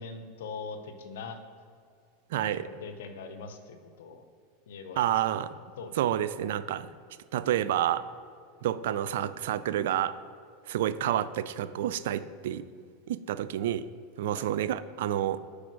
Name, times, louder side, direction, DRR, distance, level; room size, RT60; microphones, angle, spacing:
voice 1, 0.0-1.4 2.4-4.2 4.7-5.0 5.8-6.0 14.3-14.5, left 4 dB, 80° left, 7 dB, 0.7 m, -42 dB
voice 2, 2.3-2.6 5.0-5.5 6.0-6.9 7.3-8.0 8.6-10.2 10.7-12.7 13.1-13.8 14.2-15.4, right 11 dB, 75° right, 15 dB, 0.3 m, -29 dB
5.1 x 4.9 x 6.1 m, 2.2 s
hypercardioid pair, 115°, 0 cm